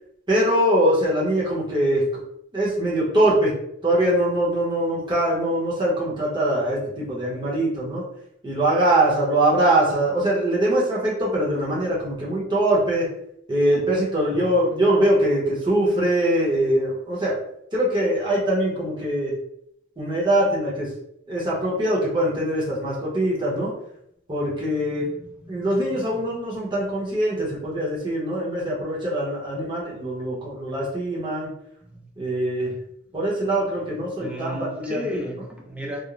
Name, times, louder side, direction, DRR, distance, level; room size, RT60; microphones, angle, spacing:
voice 1, 0.3-2.0 2.5-3.5 3.8-8.0 8.4-13.1 13.5-17.4 17.7-19.3 20.0-20.9 21.3-23.7 24.3-25.0 25.5-31.5 32.2-32.7 33.1-35.3, right 1 dB, 25° right, -6 dB, 0.8 m, -22 dB
voice 2, 25.0-25.8 31.9-32.0 33.1-33.7 34.2-36.0, equal, 5° right, -1 dB, 0.4 m, -35 dB
2.4 x 2.0 x 3.0 m, 0.75 s
head